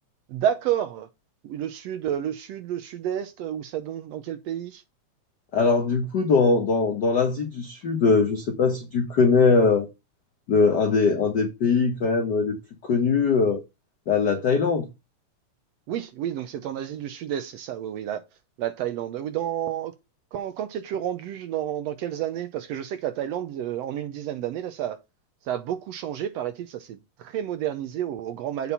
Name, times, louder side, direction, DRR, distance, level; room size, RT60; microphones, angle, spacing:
voice 1, 0.3-1.1 1.4-4.8 15.9-18.2 18.6-19.9 20.3-25.0 25.4-28.7, right 10 dB, 80° right, 1.6 m, -30 dB
voice 2, 5.5-9.9 10.5-12.6 12.8-13.6 14.1-14.9, left 4 dB, 70° left, 0.9 m, -21 dB
8.5 x 4.3 x 5.4 m
omnidirectional pair, 3.5 m